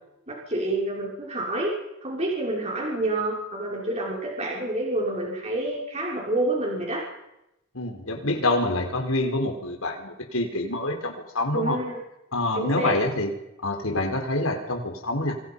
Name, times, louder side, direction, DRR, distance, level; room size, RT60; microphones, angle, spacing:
voice 1, 0.3-1.7 2.0-7.0 11.5-12.0 12.5-13.0, right 2 dB, 30° right, -2 dB, 5.9 m, -28 dB
voice 2, 7.7-11.8 12.3-13.3 13.6-15.4, left 2 dB, 80° left, 4 dB, 4.7 m, -26 dB
29.0 x 26.0 x 5.7 m, 0.89 s
head